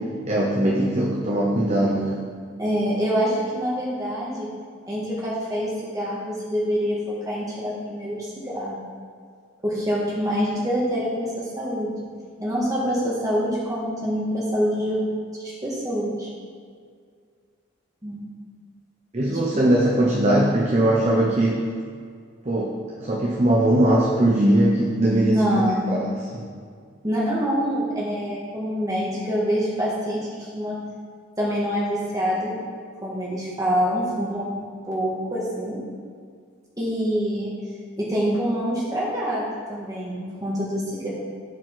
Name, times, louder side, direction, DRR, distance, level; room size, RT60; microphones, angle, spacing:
voice 1, 0.3-2.2 19.1-21.6 22.4-26.5, right 1 dB, 35° right, -2 dB, 0.9 m, -21 dB
voice 2, 2.6-4.5 4.9-7.0 7.2-8.8 9.6-12.0 12.4-15.0 15.4-16.3 18.0-18.2 19.5-19.6 25.3-26.0 27.0-30.8 31.4-32.6 33.0-34.5 34.8-35.8 36.8-37.5 38.0-41.1, equal, 20° right, -6 dB, 1.8 m, -25 dB
15.5 x 5.2 x 3.9 m, 2.1 s
head